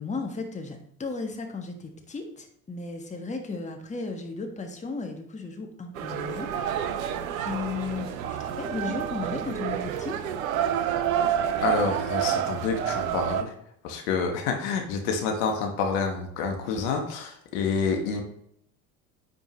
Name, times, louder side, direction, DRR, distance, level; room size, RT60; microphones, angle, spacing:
voice 1, 0.0-6.5 7.3-10.2, left 4 dB, 15° left, 3 dB, 1.4 m, -35 dB
sound 1, 6.0-13.4, right 9 dB, 70° right, 0.7 m, -28 dB
voice 2, 11.6-13.5 13.8-18.2, left 5 dB, 60° left, 3 dB, 1.5 m, -28 dB
9.9 x 5.2 x 3.0 m, 0.70 s
figure-of-eight pair, 65°, 43 cm